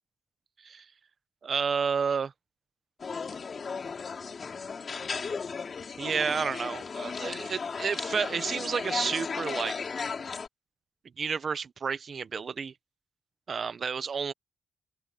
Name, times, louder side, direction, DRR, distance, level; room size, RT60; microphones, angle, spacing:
voice 1, 1.4-2.3 6.0-9.9 11.2-12.7 13.5-14.3, right 6 dB, 45° right, 0.9 m, -31 dB
sound 1, 3.0-10.5, left 5 dB, 40° left, 3.8 m, -35 dB
open air
wide cardioid pair, 140°, 0 cm